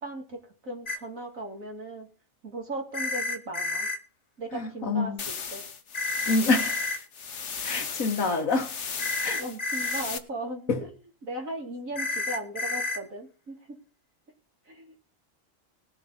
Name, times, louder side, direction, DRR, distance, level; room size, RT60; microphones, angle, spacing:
voice 1, 0.0-2.1 2.4-3.9 4.4-5.6 9.4-13.8 14.7-15.0, right 1 dB, 75° right, 3.0 m, -37 dB
sound 1, 0.9-1.0 2.9-4.0 5.9-7.0 9.0-10.0 11.9-13.0, left 2 dB, 35° left, 0.9 m, -30 dB
sound 2, 5.2-10.2, left 6 dB, 60° left, 1.4 m, -36 dB
voice 2, 6.3-6.9 7.6-8.7 9.2-9.4 10.7-10.8, left 3 dB, 75° left, 1.9 m, -26 dB
20.0 x 6.9 x 4.1 m
omnidirectional pair, 1.4 m